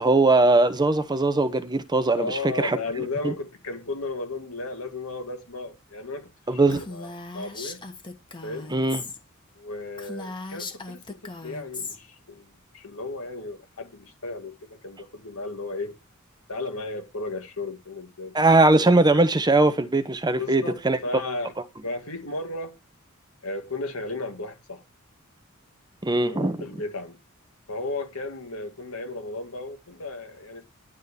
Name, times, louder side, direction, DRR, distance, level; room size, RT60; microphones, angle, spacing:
voice 1, 0.0-2.8 3.2-3.3 6.5-6.8 8.7-9.0 18.3-21.0 26.0-26.6, right 2 dB, 20° right, 0.9 m, -20 dB
voice 2, 2.1-7.8 8.4-8.7 9.6-15.9 16.5-18.3 20.4-21.5 21.8-22.8 23.4-24.8 26.3-27.2 27.7-30.6, left 2 dB, 80° left, 2.2 m, -34 dB
Female speech woman speaking, 6.7-9.2 9.5-9.6 10.0-12.0, left 3 dB, 25° left, 1.4 m, -38 dB
11.0 x 3.7 x 6.7 m
head